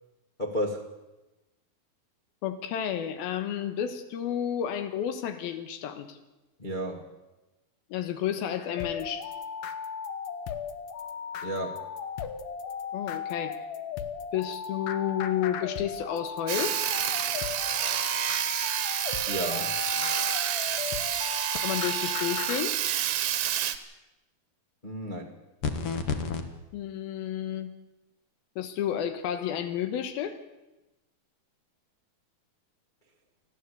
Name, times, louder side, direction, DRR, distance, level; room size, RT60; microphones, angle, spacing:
voice 1, 0.4-0.9 6.6-7.0 11.4-11.8 19.3-19.7 24.8-25.3, equal, 30° left, 0 dB, 0.8 m, -32 dB
voice 2, 2.4-6.2 7.9-9.3 12.9-13.7 14.3-16.8 21.6-22.8 26.7-27.7 28.6-30.4, left 9 dB, 85° left, 9 dB, 3.0 m, -31 dB
sound 1, 8.8-22.6, left 7 dB, 70° left, 2.5 m, -36 dB
Sawing, 16.5-23.8, right 11 dB, 70° right, 2.6 m, -29 dB
sound 2, 25.6-26.4, left 5 dB, 50° left, 1.9 m, -29 dB
29.0 x 10.5 x 8.3 m, 1.0 s
omnidirectional pair, 4.2 m